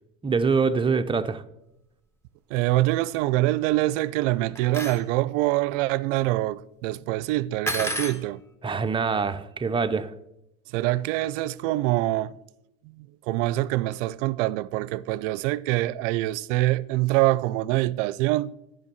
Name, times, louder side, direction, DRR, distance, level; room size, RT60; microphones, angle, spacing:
voice 1, 0.2-1.4 8.6-10.1, right 5 dB, 15° right, 0.6 m, -24 dB
voice 2, 2.5-8.4 10.7-12.3 13.0-18.5, right 17 dB, 70° right, 0.5 m, -25 dB
sound 1, 4.6-5.0 7.7-8.2, equal, 5° left, 1.3 m, -30 dB
11.0 x 5.4 x 7.0 m
hypercardioid pair, 80°, 39 cm